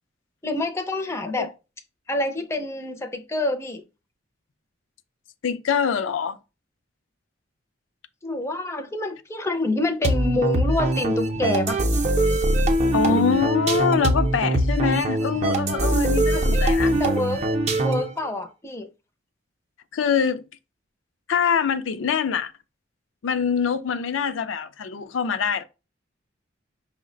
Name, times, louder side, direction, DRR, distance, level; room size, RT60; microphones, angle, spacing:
voice 1, 0.4-1.5 2.1-3.8 8.2-11.8 16.3-17.4 17.8-18.9, left 2 dB, 15° left, 0.5 m, -27 dB
voice 2, 5.4-6.4 12.9-16.9 19.9-20.4 21.3-22.5 23.2-25.6, left 6 dB, 80° left, 0.4 m, -24 dB
sound 1, 10.0-18.2, right 1 dB, 35° right, 0.6 m, -22 dB
5.5 x 2.1 x 3.8 m
head